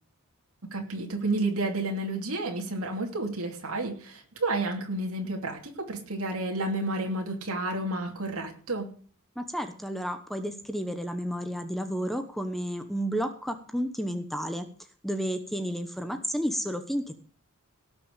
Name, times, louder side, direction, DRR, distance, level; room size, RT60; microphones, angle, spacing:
voice 1, 0.7-8.9, right 2 dB, 75° right, 1 dB, 2.7 m, -31 dB
voice 2, 9.4-14.7 15.0-17.1, equal, ahead, 7 dB, 1.0 m, -31 dB
18.0 x 6.2 x 6.7 m, 0.43 s
head